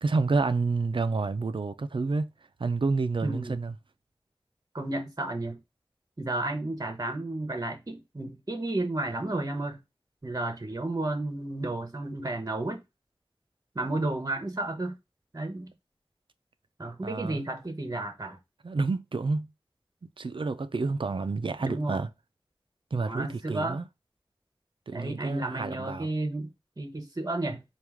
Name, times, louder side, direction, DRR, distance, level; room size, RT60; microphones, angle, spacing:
voice 1, 0.0-2.3 2.6-3.7 17.0-17.5 18.6-19.5 20.2-22.1 22.9-23.8 24.9-26.1, right 3 dB, 70° right, 0.4 m, -29 dB
voice 2, 3.2-3.6 4.7-5.6 6.2-9.8 10.2-12.8 13.7-15.0 15.3-15.7 16.8-18.4 21.6-22.1 23.0-23.8 24.9-27.6, right 2 dB, 40° right, 0.8 m, -32 dB
4.6 x 2.4 x 3.5 m
wide cardioid pair, 50°, 9 cm